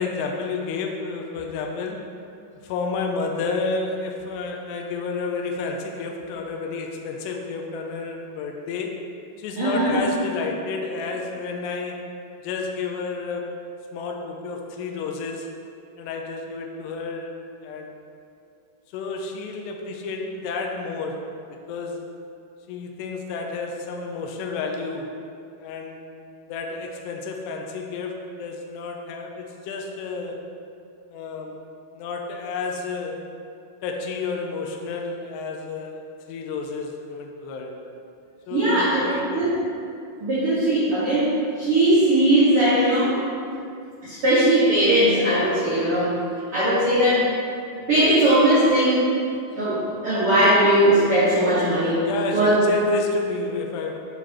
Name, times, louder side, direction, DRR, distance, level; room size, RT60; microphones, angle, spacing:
voice 1, 0.0-2.0 2.6-9.0 9.4-12.0 12.4-13.5 13.9-15.5 16.0-18.0 18.9-22.0 22.7-25.2 25.6-26.0 26.5-30.4 31.1-31.6 31.9-33.2 33.8-37.7 38.5-39.4 52.0-54.0, left 4 dB, 85° left, 2 dB, 2.4 m, -30 dB
voice 2, 9.6-10.0 38.5-39.5 40.2-41.3 41.6-43.1 44.0-46.1 46.5-47.2 47.9-49.0 49.5-52.6, right 1 dB, 55° right, -11 dB, 1.6 m, -19 dB
10.0 x 8.9 x 3.1 m, 2.5 s
omnidirectional pair, 5.6 m